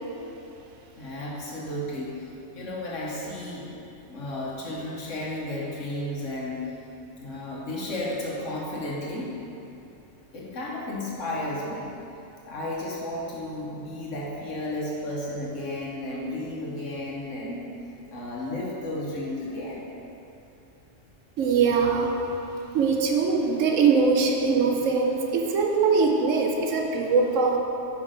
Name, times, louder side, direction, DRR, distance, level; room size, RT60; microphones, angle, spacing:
voice 1, 1.0-3.8 4.1-6.7 7.2-9.4 10.3-11.9 12.4-17.7 18.1-19.9, left 1 dB, 75° left, -5 dB, 1.4 m, -33 dB
voice 2, 21.4-22.1 22.7-27.6, right 5 dB, 80° right, 1 dB, 1.0 m, -22 dB
6.1 x 5.4 x 5.0 m, 2.9 s
omnidirectional pair, 1.3 m